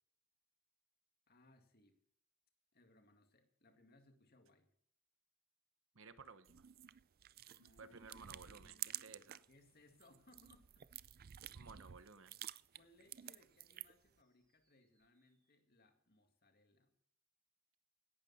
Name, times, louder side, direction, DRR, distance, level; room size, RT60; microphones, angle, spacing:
voice 1, 1.3-2.0 2.7-4.7 7.6-10.9 11.4-11.7 12.7-16.9, left 2 dB, 45° left, 6 dB, 2.1 m, -69 dB
voice 2, 5.9-6.6 7.5-9.4 11.5-12.4, right 4 dB, 60° right, 12 dB, 1.0 m, -57 dB
sound 1, 6.4-9.5 9.9-14.1, right 13 dB, 40° right, 0.4 m, -51 dB
sound 2, 7.5-15.5, right 4 dB, 15° right, 6.5 m, -88 dB
17.0 x 12.0 x 4.2 m, 0.69 s
head